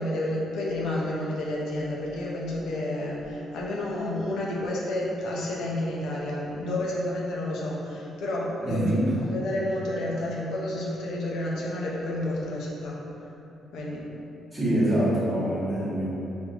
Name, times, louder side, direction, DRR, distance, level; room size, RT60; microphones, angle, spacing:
voice 1, 0.0-8.9 9.2-13.0 13.7-14.1, left 1 dB, 80° left, -4 dB, 0.6 m, -30 dB
voice 2, 8.6-9.1 14.5-16.1, right 1 dB, 20° right, -10 dB, 1.1 m, -25 dB
3.5 x 2.6 x 2.9 m, 2.9 s
cardioid pair, 90°, 0 cm